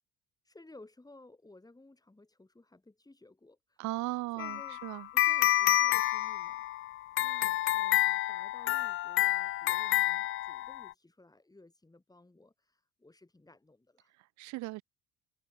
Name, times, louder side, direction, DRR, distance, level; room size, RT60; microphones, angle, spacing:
voice 1, 0.5-3.8 4.1-4.8 5.1-6.6 7.2-14.1, left 2 dB, 10° left, 5.2 m, -57 dB
voice 2, 3.8-5.1 14.2-14.8, right 20 dB, 75° right, 0.9 m, -37 dB
sound 1, 4.4-10.9, left 14 dB, 45° left, 0.4 m, -29 dB
supercardioid pair, 85°, 30 cm